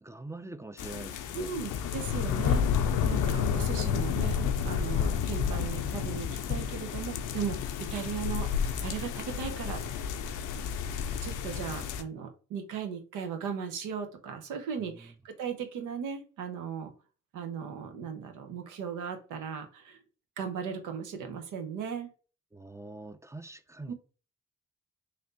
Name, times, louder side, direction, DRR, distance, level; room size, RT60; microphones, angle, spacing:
voice 1, 0.0-1.5 14.8-15.1 22.5-23.9, right 2 dB, 10° right, 0.4 m, -44 dB
sound 1, 0.8-12.0, left 7 dB, 85° left, 0.5 m, -30 dB
voice 2, 1.3-2.6 3.1-9.8 11.2-16.9 17.3-20.0 20.4-22.1 23.9-24.0, right 7 dB, 90° right, 0.8 m, -37 dB
3.3 x 2.7 x 3.9 m
supercardioid pair, 55°, 30 cm